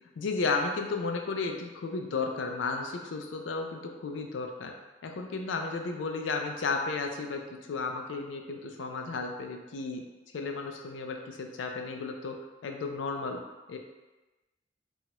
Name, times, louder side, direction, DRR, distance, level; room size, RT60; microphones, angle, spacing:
voice 1, 0.2-4.7 5.0-10.0 10.3-13.4 13.7-13.8, left 4 dB, 75° left, 3 dB, 0.4 m, -33 dB
2.9 x 2.3 x 2.9 m, 1.2 s
head